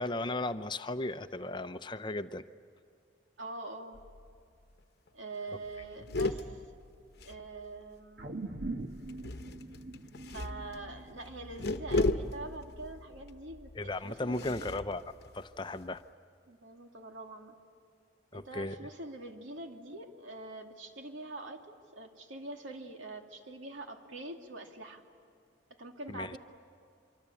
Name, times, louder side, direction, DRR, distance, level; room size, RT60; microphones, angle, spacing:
voice 1, 0.0-2.4 13.8-15.0 15.3-16.0 18.3-18.8 26.1-26.4, left 2 dB, 25° left, 10 dB, 0.6 m, -36 dB
voice 2, 3.4-4.0 5.1-6.6 7.2-8.3 10.3-14.8 16.5-17.5 18.3-25.0 25.8-26.4, right 2 dB, 85° right, 3 dB, 2.6 m, -44 dB
sound 1, 3.9-4.4 4.7-4.8 5.1-5.3 5.6-8.0 9.1-16.0, left 2 dB, 55° left, 1.0 m, -37 dB
sound 2, 8.2-12.7 13.1-13.2, right 2 dB, 55° right, 1.4 m, -43 dB
25.5 x 24.5 x 8.4 m, 2.4 s
head